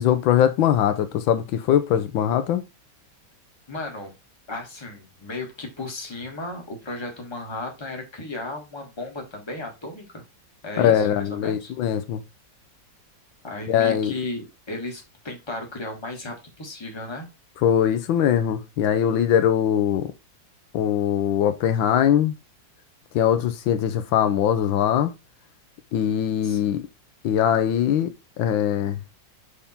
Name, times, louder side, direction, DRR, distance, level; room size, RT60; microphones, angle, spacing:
voice 1, 0.0-2.7 10.8-12.2 13.7-14.1 17.6-20.1 20.7-22.3 23.1-25.1 25.9-26.8 27.2-29.0, left 9 dB, 85° left, 1.5 m, -21 dB
voice 2, 3.7-4.1 4.5-10.2 10.6-11.7 13.4-17.3 26.4-26.8, left 2 dB, 15° left, 1.6 m, -35 dB
6.9 x 3.6 x 4.3 m
omnidirectional pair, 2.1 m